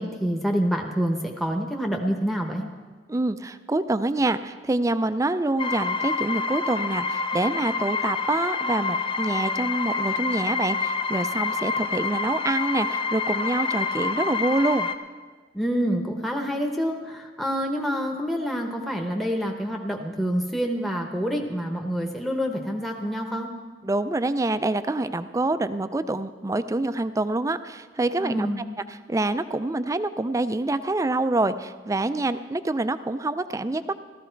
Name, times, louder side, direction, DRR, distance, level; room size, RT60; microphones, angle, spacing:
voice 1, 0.0-2.6 15.5-23.5 28.2-28.6, equal, ahead, 2 dB, 0.9 m, -27 dB
voice 2, 3.1-14.9 23.8-33.9, right 2 dB, 15° right, 12 dB, 0.4 m, -26 dB
sound 1, 5.6-14.9, left 4 dB, 30° left, 0.6 m, -27 dB
15.0 x 13.5 x 4.5 m, 1.5 s
head